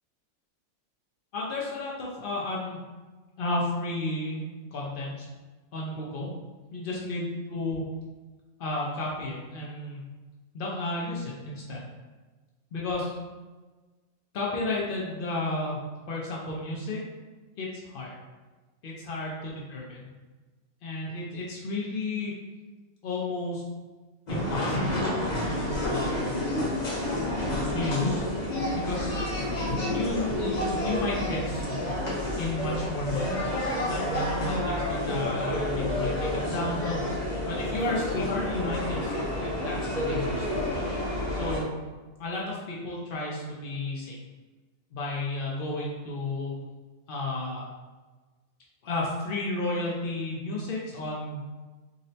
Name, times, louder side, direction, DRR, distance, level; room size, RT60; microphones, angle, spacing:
voice 1, 1.3-2.8 3.4-4.4 4.7-5.3 5.7-6.3 6.7-7.8 8.6-10.0 10.5-11.8 12.7-13.1 14.3-15.8 16.1-17.0 17.6-18.1 18.8-20.1 20.8-22.3 23.0-23.6 24.3-26.4 27.7-28.2 28.7-29.2 29.9-31.9 32.4-33.4 33.8-37.0 37.4-40.5 41.3-41.7 42.2-44.2 44.9-46.5 47.1-47.7 48.8-51.4, left 2 dB, 90° left, -4 dB, 0.4 m, -32 dB
sound 1, 24.3-41.6, left 1 dB, 40° left, 0.7 m, -29 dB
3.7 x 2.1 x 2.7 m, 1.3 s
omnidirectional pair, 1.5 m